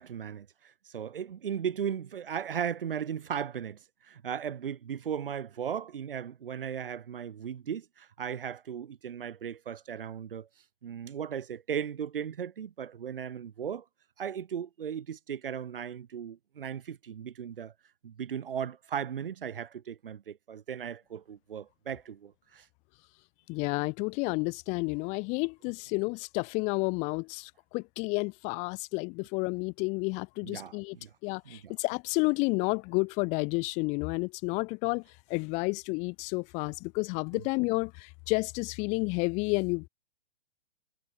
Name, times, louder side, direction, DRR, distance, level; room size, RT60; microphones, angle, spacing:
voice 1, 0.0-10.5 10.8-13.8 14.2-17.7 18.0-22.7 30.4-31.1 31.4-31.7 37.3-37.4, right 8 dB, 65° right, 2.6 m, -37 dB
voice 2, 23.5-31.0 31.2-35.0 35.3-39.9, left 29 dB, 25° left, 0.6 m, -31 dB
figure-of-eight pair, 120°, 30 cm